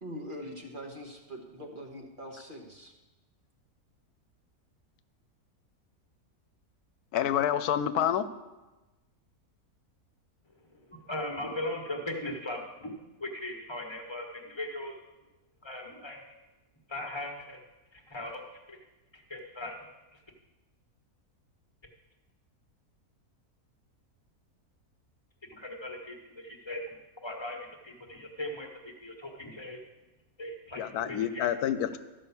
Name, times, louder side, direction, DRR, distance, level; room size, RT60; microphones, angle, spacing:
voice 1, 0.0-2.9, equal, 35° right, 1 dB, 1.3 m, -43 dB
voice 2, 7.1-8.3 30.8-32.0, left 10 dB, 90° left, 12 dB, 1.1 m, -28 dB
voice 3, 10.9-12.9 13.2-14.9 15.6-16.2 16.9-17.6 17.9-18.4 18.7-18.8 19.1-19.7 20.1-20.2 25.4-26.8 27.2-29.8 30.4-31.5, left 1 dB, 20° left, 2 dB, 1.3 m, -39 dB
13.0 x 5.5 x 7.1 m, 1.1 s
omnidirectional pair, 1.6 m